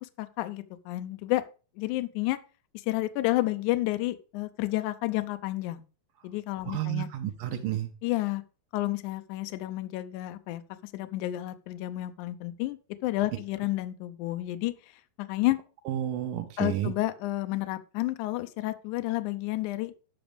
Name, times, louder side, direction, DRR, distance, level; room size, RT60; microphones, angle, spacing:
voice 1, 0.0-1.4 1.8-2.4 2.7-5.8 6.2-7.1 8.0-8.4 8.7-14.7 15.2-15.6 16.6-20.1, left 17 dB, 90° left, 10 dB, 1.7 m, -31 dB
voice 2, 6.7-7.9 15.9-16.9, right 12 dB, 75° right, 6 dB, 2.2 m, -31 dB
10.5 x 6.1 x 5.1 m, 0.34 s
omnidirectional pair, 4.3 m